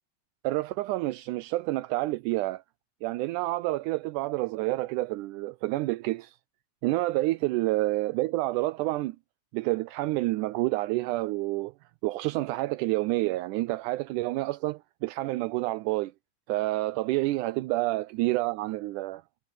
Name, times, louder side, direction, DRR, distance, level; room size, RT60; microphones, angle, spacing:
voice 1, 0.4-2.6 3.0-6.4 6.8-9.2 9.5-11.7 12.0-16.1 16.5-19.2, right 19 dB, 80° right, 2.0 m, -28 dB
omnidirectional pair, 3.7 m